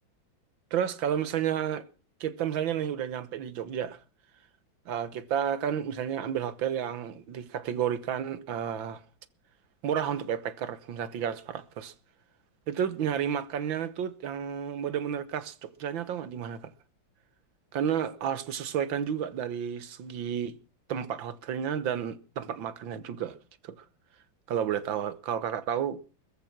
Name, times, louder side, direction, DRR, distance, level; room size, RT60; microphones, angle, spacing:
voice 1, 0.7-1.9 2.2-4.0 4.9-9.0 9.8-11.9 12.7-16.7 17.7-20.6 20.9-23.4 23.6-23.9 24.5-26.0, right 9 dB, 80° right, 1.9 m, -31 dB
22.0 x 7.5 x 6.0 m
omnidirectional pair, 2.1 m